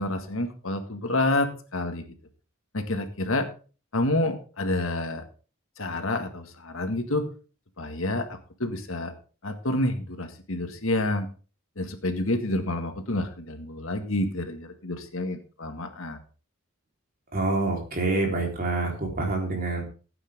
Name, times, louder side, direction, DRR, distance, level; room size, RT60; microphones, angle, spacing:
voice 1, 0.0-2.1 2.7-3.5 3.9-5.2 5.8-7.3 7.8-9.1 9.4-11.3 11.8-16.2, left 1 dB, 65° left, 6 dB, 1.9 m, -28 dB
voice 2, 17.3-19.8, right 2 dB, 45° right, 1 dB, 4.0 m, -26 dB
16.0 x 9.1 x 3.7 m, 0.37 s
head